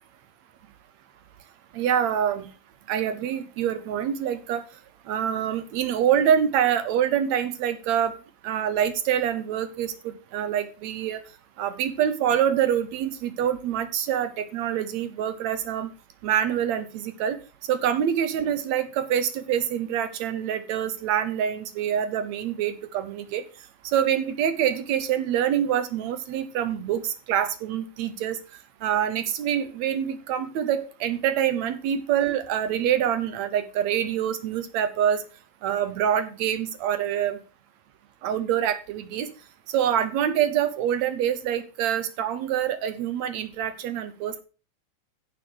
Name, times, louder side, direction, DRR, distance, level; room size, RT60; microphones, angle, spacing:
voice 1, 1.7-2.5 2.9-4.6 5.1-8.1 8.4-11.2 11.6-15.9 16.2-17.4 17.7-23.4 23.8-28.4 28.8-35.2 35.6-37.4 38.2-39.3 39.7-44.4, right 9 dB, 75° right, 11 dB, 1.6 m, -25 dB
10.5 x 7.0 x 6.1 m, 0.35 s
omnidirectional pair, 4.3 m